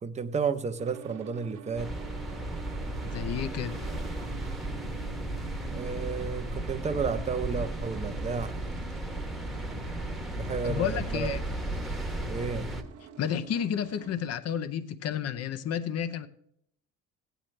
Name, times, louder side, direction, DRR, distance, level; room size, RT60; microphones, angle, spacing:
voice 1, 0.0-1.9 5.7-8.6 10.3-11.4 12.3-12.7, right 5 dB, 20° right, 0.7 m, -32 dB
sound 1, 0.8-14.2, right 8 dB, 55° right, 1.1 m, -47 dB
sound 2, 1.8-12.8, right 1 dB, ahead, 1.0 m, -35 dB
voice 2, 3.0-3.8 10.6-11.4 13.2-16.3, left 9 dB, 50° left, 0.7 m, -31 dB
15.5 x 9.0 x 3.3 m
cardioid pair, 125°, 33 cm